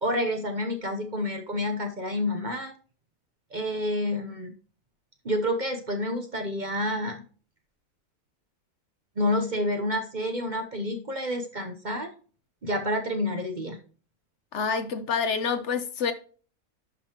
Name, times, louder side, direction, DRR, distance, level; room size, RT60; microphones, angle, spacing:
voice 1, 0.0-2.7 3.5-4.5 5.2-7.2 9.2-12.1 12.6-13.8, left 1 dB, 40° right, 0.9 m, -29 dB
voice 2, 14.5-16.1, left 6 dB, 60° left, 1.0 m, -27 dB
11.5 x 5.3 x 2.9 m
omnidirectional pair, 1.5 m